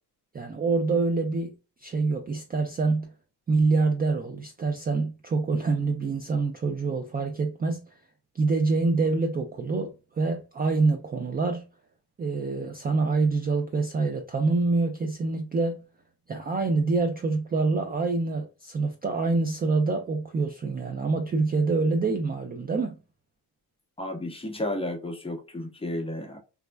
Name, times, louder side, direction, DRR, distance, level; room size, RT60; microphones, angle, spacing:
voice 1, 0.3-1.6 1.8-3.1 3.5-7.9 8.3-11.7 12.2-15.8 16.3-23.0, right 3 dB, 25° right, 0.4 m, -26 dB
voice 2, 24.0-26.4, left 1 dB, 15° left, 0.7 m, -32 dB
3.4 x 2.1 x 2.2 m
cardioid pair, 95°, 40 cm